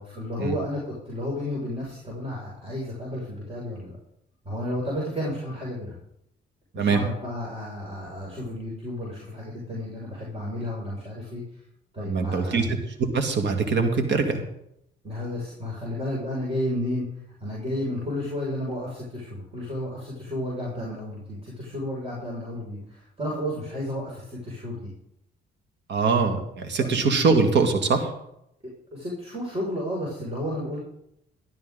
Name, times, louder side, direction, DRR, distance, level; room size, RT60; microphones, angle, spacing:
voice 1, 0.1-3.9 4.4-5.9 6.7-11.4 11.9-12.6 15.0-17.1 17.4-24.9 26.8-26.9 28.9-30.8, left 1 dB, 30° right, -4 dB, 5.9 m, -32 dB
voice 2, 12.0-12.6 13.0-14.4 25.9-28.1, right 4 dB, 65° right, 5 dB, 2.2 m, -23 dB
13.5 x 12.5 x 3.9 m, 0.76 s
cardioid pair, 90°, 20 cm